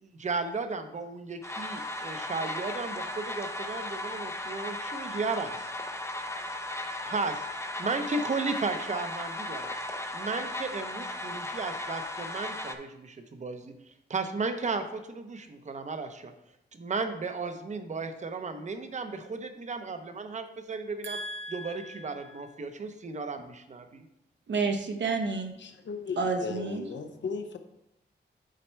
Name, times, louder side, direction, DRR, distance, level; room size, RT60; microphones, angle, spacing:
voice 1, 0.0-5.7 7.1-9.8 10.1-16.3 16.7-21.2 21.5-24.1, right 4 dB, 40° right, 8 dB, 0.6 m, -35 dB
sound 1, 1.4-12.8, left 1 dB, 15° left, 0.5 m, -36 dB
voice 2, 21.0-22.0 24.5-25.5 26.2-26.9, right 4 dB, 80° right, 5 dB, 0.9 m, -31 dB
voice 3, 25.6-27.6, left 4 dB, 80° left, 7 dB, 0.7 m, -36 dB
7.5 x 4.1 x 4.5 m, 0.84 s
wide cardioid pair, 165°, 19 cm